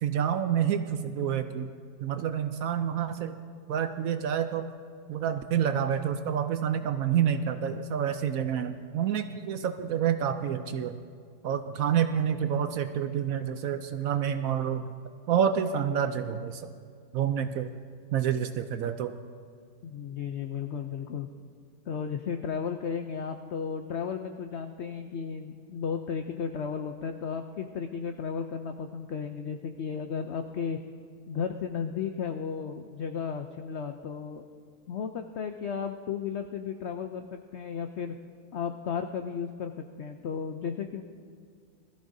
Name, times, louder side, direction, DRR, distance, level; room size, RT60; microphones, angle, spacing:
voice 1, 0.0-1.7 2.0-3.3 3.7-4.7 5.1-11.0 11.4-14.9 15.3-16.7 17.1-17.7 18.1-19.1, right 8 dB, 70° right, 9 dB, 0.8 m, -28 dB
voice 2, 19.8-21.3 21.9-30.8 31.3-34.4 34.9-38.1 38.5-41.0, left 6 dB, 80° left, 6 dB, 0.6 m, -34 dB
20.5 x 14.0 x 2.7 m, 2.1 s
omnidirectional pair, 1.8 m